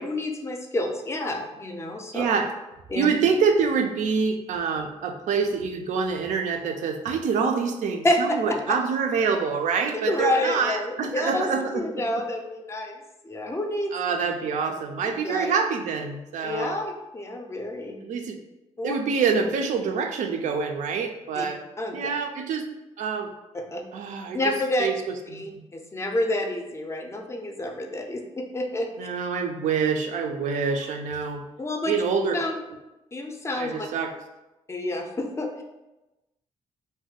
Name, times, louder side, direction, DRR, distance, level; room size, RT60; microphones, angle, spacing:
voice 1, 0.0-2.3 2.9-3.1 8.0-8.2 10.1-13.0 13.2-13.9 15.0-15.5 16.4-18.0 18.8-19.0 21.3-21.5 21.8-22.0 23.5-23.8 24.3-24.9 25.3-28.9 31.6-31.9 32.3-32.6 33.1-33.7 34.7-35.6, left 1 dB, 20° left, 2 dB, 0.4 m, -28 dB
voice 2, 2.1-2.5 3.0-11.8 13.9-16.8 18.0-18.4 18.8-21.6 21.9-22.6 23.0-23.3 23.9-24.5 24.8-25.6 29.0-31.4 31.9-32.4 33.6-34.1, right 5 dB, 80° right, 4 dB, 0.4 m, -26 dB
2.5 x 2.1 x 3.8 m, 1.0 s
cardioid pair, 115°, 12 cm